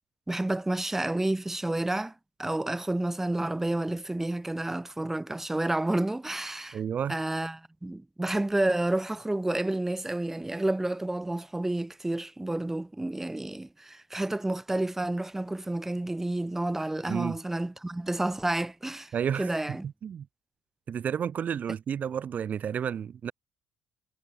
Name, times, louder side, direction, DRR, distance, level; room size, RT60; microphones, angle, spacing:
voice 1, 0.3-2.1 2.4-6.8 7.1-19.9, right 1 dB, 10° right, 3.8 m, -30 dB
voice 2, 6.7-7.2 17.1-17.3 19.1-20.3 20.9-23.3, right 8 dB, 50° right, 3.2 m, -31 dB
cardioid pair, 110°, 4 cm